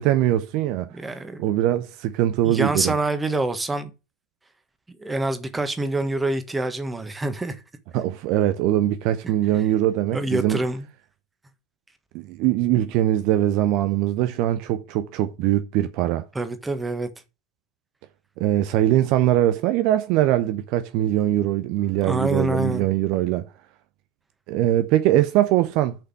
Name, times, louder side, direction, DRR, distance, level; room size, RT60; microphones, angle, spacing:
voice 1, 0.0-3.0 7.9-10.6 12.1-16.2 18.4-23.5 24.5-26.0, right 13 dB, 50° right, 0.6 m, -22 dB
voice 2, 0.9-1.5 2.4-3.9 5.0-7.5 10.1-10.9 16.3-17.1 21.8-22.9, right 2 dB, 10° right, 1.5 m, -26 dB
6.9 x 5.7 x 7.5 m
figure-of-eight pair, 75°, 0 cm